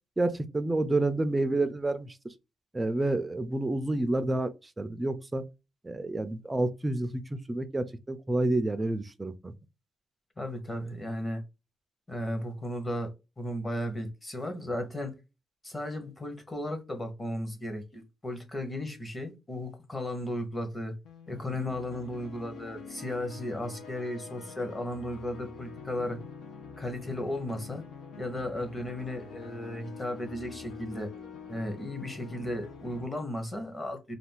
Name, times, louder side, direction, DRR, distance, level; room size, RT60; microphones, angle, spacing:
voice 1, 0.2-2.3 2.7-5.4 5.8-9.5, right 2 dB, 15° right, 0.3 m, -29 dB
voice 2, 10.4-11.4 12.1-13.1 13.4-15.1 15.6-20.9 21.3-26.2 26.8-27.8 28.2-31.1 31.5-34.2, left 1 dB, 20° left, 0.7 m, -35 dB
sound 1, 21.0-33.1, left 5 dB, 85° left, 0.6 m, -46 dB
2.4 x 2.3 x 3.6 m
cardioid pair, 150°, 0 cm